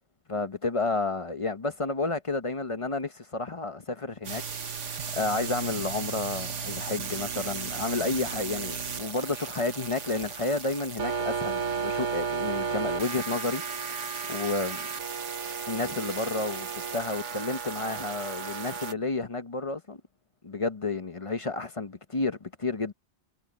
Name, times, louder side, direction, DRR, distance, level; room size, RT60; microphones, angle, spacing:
voice 1, 0.3-14.9 15.7-20.0 20.4-22.9, left 3 dB, 30° left, 0.9 m, -31 dB
sound 1, 4.2-18.9, right 6 dB, 85° right, 1.6 m, -34 dB
omnidirectional pair, 1.2 m